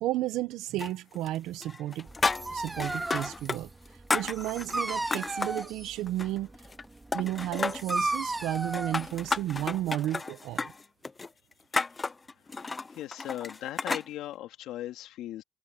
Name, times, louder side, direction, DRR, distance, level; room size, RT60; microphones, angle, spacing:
voice 1, 0.0-2.1 2.5-3.7 4.1-6.5 7.1-10.7, right 14 dB, 65° right, 1.1 m, -33 dB
sound 1, 0.8-1.4 1.6-3.6 3.8-5.6 6.1-6.8 7.1-8.0 8.5-14.1, left 3 dB, 20° left, 0.6 m, -32 dB
Dog, 2.1-9.9, right 2 dB, 10° right, 2.9 m, -35 dB
voice 2, 12.9-15.4, left 13 dB, 65° left, 2.5 m, -38 dB
cardioid pair, 125°, 0 cm